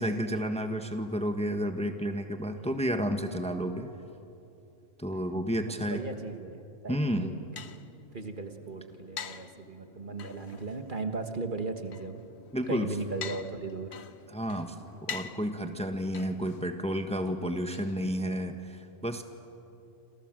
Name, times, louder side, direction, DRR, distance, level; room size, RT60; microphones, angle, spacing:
voice 1, 0.0-3.9 5.0-6.0 6.9-7.4 12.5-12.9 14.3-14.7 15.0-19.2, equal, 5° left, 6 dB, 1.3 m, -31 dB
voice 2, 5.6-7.3 8.1-12.2 12.7-13.9, right 3 dB, 40° right, 6 dB, 1.5 m, -37 dB
sound 1, 7.0-18.6, left 6 dB, 60° left, 1.2 m, -47 dB
27.5 x 27.5 x 7.7 m, 2.7 s
omnidirectional pair, 1.3 m